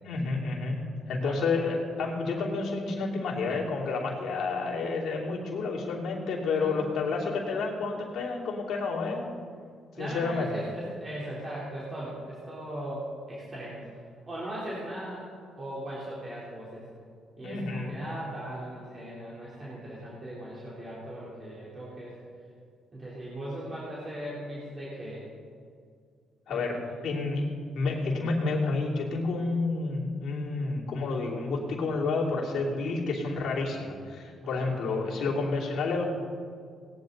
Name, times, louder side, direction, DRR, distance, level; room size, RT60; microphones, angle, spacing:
voice 1, 0.0-0.8 1.1-9.3 10.0-10.5 17.4-18.0 26.5-27.4 27.7-36.0, left 3 dB, 70° left, -3 dB, 3.0 m, -30 dB
voice 2, 6.5-7.0 9.9-13.9 14.3-16.8 17.4-22.1 22.9-25.3 26.5-27.0 34.4-34.7, right 1 dB, 30° right, -7 dB, 3.4 m, -39 dB
18.0 x 10.5 x 4.0 m, 2.2 s
cardioid pair, 90°, 0 cm